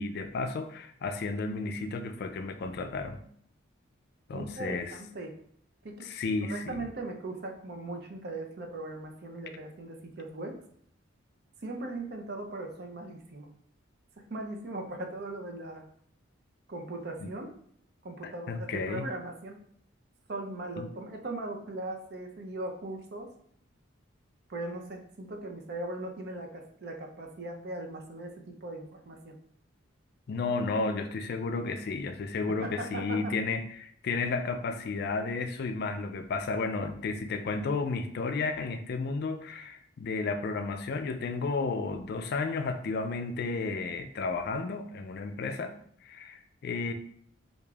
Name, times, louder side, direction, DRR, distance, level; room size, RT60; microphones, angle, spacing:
voice 1, 0.0-3.2 4.3-5.0 6.0-6.9 17.2-17.3 18.2-19.1 20.8-20.9 30.3-45.7 46.0-46.9, left 3 dB, 50° left, 7 dB, 0.3 m, -32 dB
voice 2, 4.3-5.3 5.8-6.1 6.4-10.6 11.6-13.5 14.2-15.8 16.7-17.5 18.0-19.6 20.3-23.3 24.5-28.3 28.6-29.4 32.5-33.3, right 2 dB, 55° right, 3 dB, 0.6 m, -39 dB
4.8 x 2.5 x 2.3 m, 0.63 s
head